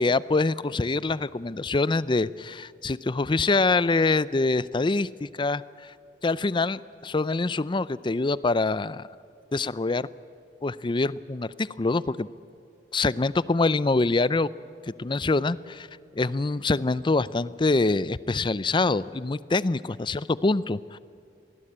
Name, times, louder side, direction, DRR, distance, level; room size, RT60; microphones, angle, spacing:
voice 1, 0.0-5.9 6.2-9.1 9.5-10.1 10.6-12.3 12.9-14.5 15.0-15.9 16.1-21.0, left 3 dB, 30° left, 18 dB, 0.5 m, -25 dB
24.5 x 19.0 x 8.7 m, 2.4 s
head